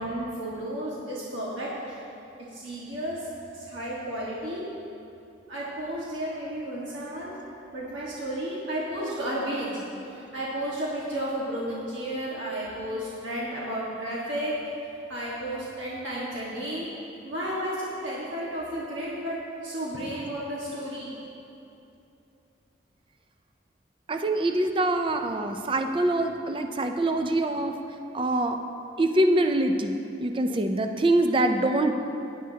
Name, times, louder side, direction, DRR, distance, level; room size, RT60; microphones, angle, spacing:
voice 1, 0.0-2.0 2.5-4.7 5.5-7.3 7.7-9.8 10.1-14.5 15.1-16.9 17.2-21.2, right 1 dB, 85° right, -7 dB, 1.6 m, -33 dB
voice 2, 24.1-27.8 28.1-28.6 29.0-31.9, right 1 dB, 25° right, 6 dB, 0.5 m, -24 dB
17.0 x 9.8 x 2.8 m, 2.7 s
head